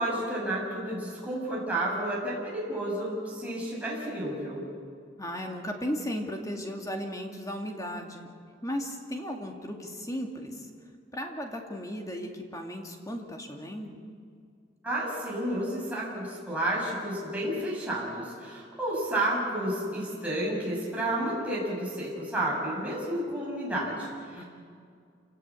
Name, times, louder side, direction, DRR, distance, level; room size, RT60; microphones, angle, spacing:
voice 1, 0.0-4.6 14.8-24.4, right 1 dB, 10° right, -5 dB, 6.9 m, -31 dB
voice 2, 5.2-8.3 8.6-10.5 11.1-14.0 24.4-24.5, equal, 20° left, 2 dB, 2.4 m, -35 dB
27.5 x 18.0 x 8.6 m, 2.2 s
head